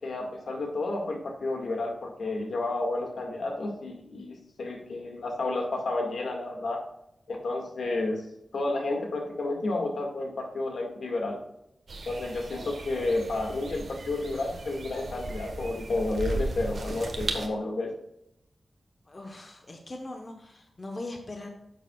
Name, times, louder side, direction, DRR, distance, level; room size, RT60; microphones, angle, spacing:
voice 1, 0.0-6.8 7.3-8.2 8.5-11.4 12.1-17.9, left 2 dB, 75° left, 1 dB, 1.9 m, -31 dB
sound 1, 11.9-17.5, right 2 dB, 65° right, 1.3 m, -36 dB
voice 2, 19.1-21.5, left 2 dB, 30° left, 2 dB, 1.0 m, -40 dB
10.0 x 7.4 x 2.4 m, 0.82 s
wide cardioid pair, 130°, 0 cm